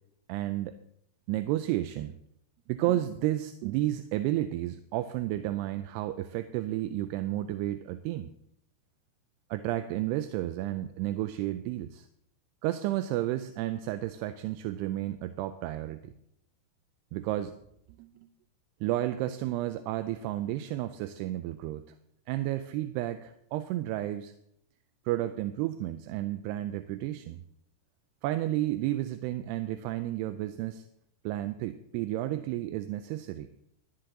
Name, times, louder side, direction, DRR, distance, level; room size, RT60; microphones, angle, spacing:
voice 1, 0.3-0.8 1.3-2.2 2.7-8.3 9.5-12.1 12.6-16.1 17.1-17.6 18.0-18.3 18.8-21.9 22.3-24.3 25.1-27.4 28.2-30.8 31.2-33.5, right 14 dB, 85° right, 10 dB, 2.6 m, -32 dB
13.5 x 11.5 x 3.9 m, 0.72 s
omnidirectional pair, 4.9 m